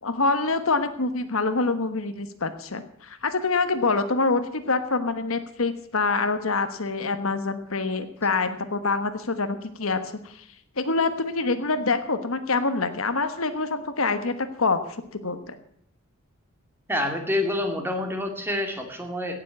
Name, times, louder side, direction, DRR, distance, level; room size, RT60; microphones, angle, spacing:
voice 1, 0.0-10.0 10.2-10.4 10.8-14.8 15.1-15.6, left 3 dB, 65° left, 10 dB, 1.3 m, -25 dB
voice 2, 16.9-19.3, left 1 dB, 10° right, 4 dB, 2.3 m, -27 dB
17.0 x 7.5 x 8.4 m, 0.68 s
head